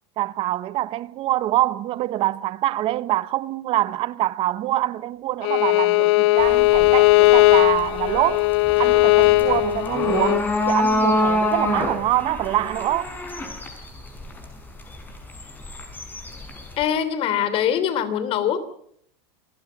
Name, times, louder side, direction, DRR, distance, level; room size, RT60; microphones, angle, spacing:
voice 1, 0.2-8.5 8.8-13.2, right 15 dB, 40° right, 0.9 m, -25 dB
Bowed string instrument, 5.4-10.4, left 20 dB, 65° left, 0.9 m, -17 dB
sound 1, 6.4-16.8, left 2 dB, 15° left, 6.0 m, -27 dB
voice 2, 16.8-18.6, left 9 dB, 40° left, 3.1 m, -23 dB
27.5 x 15.5 x 7.2 m
supercardioid pair, 130°, 14 cm